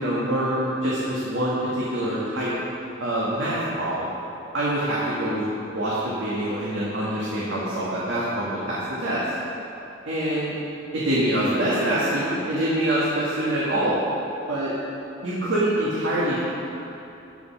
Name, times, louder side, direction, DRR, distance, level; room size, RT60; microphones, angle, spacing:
voice 1, 0.0-2.5 3.0-4.1 4.5-9.2 10.1-10.5 10.9-14.0 14.5-14.7 15.2-16.4, right 1 dB, 75° right, -8 dB, 1.7 m, -25 dB
12.0 x 5.4 x 5.9 m, 2.9 s
head